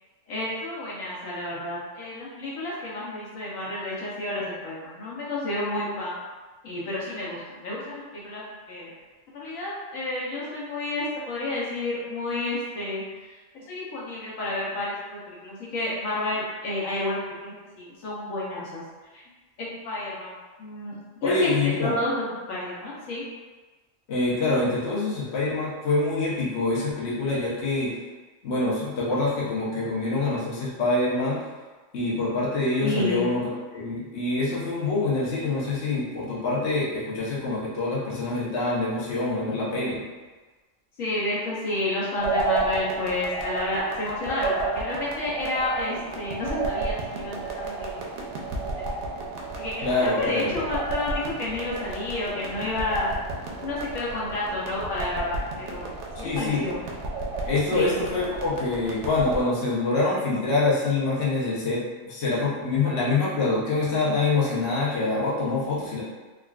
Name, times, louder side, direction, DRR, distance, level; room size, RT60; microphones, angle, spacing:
voice 1, 0.3-6.2 6.6-8.9 9.3-18.8 19.1-19.2 19.6-20.3 20.6-23.2 32.8-33.2 41.0-48.0 48.6-49.0 49.5-53.1 53.6-55.4 55.7-55.9 56.2-56.8 57.7-57.9, left 2 dB, 80° left, -6 dB, 1.1 m, -30 dB
voice 2, 21.2-22.0 24.1-28.0 28.4-31.4 31.9-40.0 49.8-50.5 56.2-56.6 57.4-66.0, left 3 dB, 60° left, -6 dB, 1.0 m, -25 dB
sound 1, 42.2-59.4, right 3 dB, 65° right, 0.8 m, -32 dB
3.6 x 2.3 x 2.3 m, 1.3 s
omnidirectional pair, 1.4 m